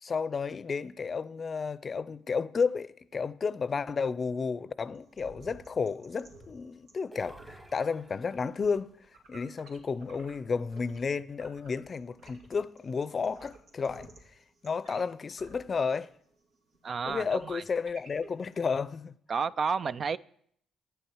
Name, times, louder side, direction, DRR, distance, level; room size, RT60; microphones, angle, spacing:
voice 1, 0.0-8.9 9.3-14.1 14.6-16.1 17.1-19.1, left 5 dB, 40° left, 0.5 m, -32 dB
sound 1, 4.9-11.1 11.3-18.6, right 2 dB, 85° right, 2.7 m, -54 dB
sound 2, 7.1-8.7, right 1 dB, 15° right, 1.4 m, -51 dB
voice 2, 16.8-17.6 19.3-20.2, right 5 dB, 45° right, 0.4 m, -31 dB
11.5 x 9.3 x 4.8 m
cardioid pair, 90°, 0 cm